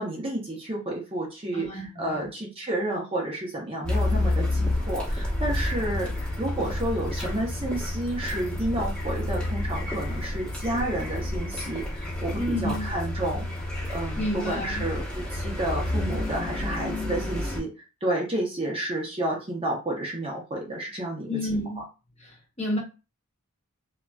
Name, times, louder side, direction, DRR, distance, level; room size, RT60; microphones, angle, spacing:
voice 1, 0.0-13.4 13.9-15.0 15.3-17.7 18.0-21.4, right 1 dB, 25° right, 0.7 m, -30 dB
voice 2, 1.5-2.3 12.3-12.9 14.2-14.9 21.2-21.8 22.2-22.8, left 1 dB, 30° left, 0.9 m, -30 dB
Car, 3.8-17.6, left 1 dB, 5° left, 0.9 m, -30 dB
2.9 x 2.5 x 2.3 m
head